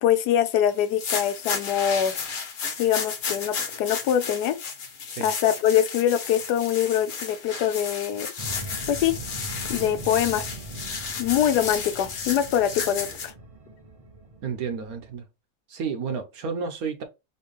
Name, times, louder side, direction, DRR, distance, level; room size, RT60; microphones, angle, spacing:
voice 1, 0.0-2.2 2.8-4.6 5.2-8.3 8.9-9.2 9.7-10.5 11.2-13.3, left 10 dB, 80° left, 1.2 m, -23 dB
sound 1, 0.8-13.3, left 5 dB, 60° left, 1.1 m, -33 dB
sound 2, 8.4-15.1, right 2 dB, 45° right, 0.4 m, -40 dB
voice 2, 14.4-15.3 15.7-17.0, right 5 dB, 70° right, 1.3 m, -31 dB
4.4 x 3.0 x 3.2 m
omnidirectional pair, 1.7 m